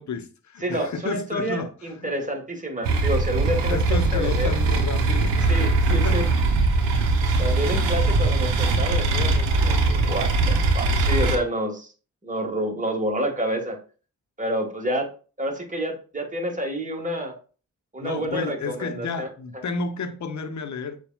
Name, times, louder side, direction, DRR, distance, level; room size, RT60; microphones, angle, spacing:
voice 1, 0.0-2.1 3.7-5.6 5.9-6.4 6.8-7.3 7.7-7.9 18.0-21.0, left 4 dB, 45° left, 0.8 m, -32 dB
voice 2, 0.6-4.5 5.5-6.2 7.4-11.9 12.2-13.8 14.4-15.1 15.4-17.3 17.9-19.3, equal, 20° right, 1.4 m, -28 dB
sound 1, 2.8-11.4, right 3 dB, 85° right, 0.7 m, -21 dB
6.7 x 2.4 x 2.3 m
supercardioid pair, 40°, 41 cm